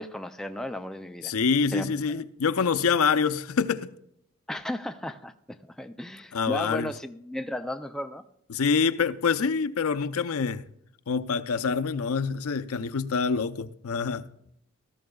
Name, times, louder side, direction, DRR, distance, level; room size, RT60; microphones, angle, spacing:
voice 1, 0.0-1.3 1.7-1.9 4.5-5.3 5.7-8.2, left 1 dB, ahead, 0.4 m, -34 dB
voice 2, 1.2-3.9 6.3-6.9 8.5-10.6 11.1-14.3, left 5 dB, 80° left, 0.6 m, -26 dB
17.5 x 14.0 x 2.3 m
head